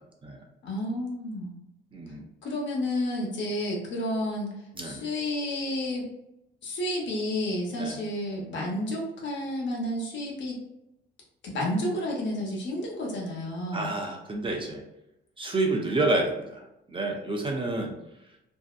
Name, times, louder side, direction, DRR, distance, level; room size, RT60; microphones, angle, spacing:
voice 1, 0.6-1.5 2.4-6.1 6.6-10.6 11.4-13.9, left 1 dB, 65° left, -1 dB, 0.9 m, -31 dB
voice 2, 1.9-2.2 4.8-5.1 7.7-8.0 8.5-8.8 13.7-14.8 15.4-16.6 16.9-18.0, right 2 dB, 25° right, 1 dB, 0.5 m, -29 dB
2.6 x 2.1 x 2.4 m, 0.88 s
cardioid pair, 90°, 20 cm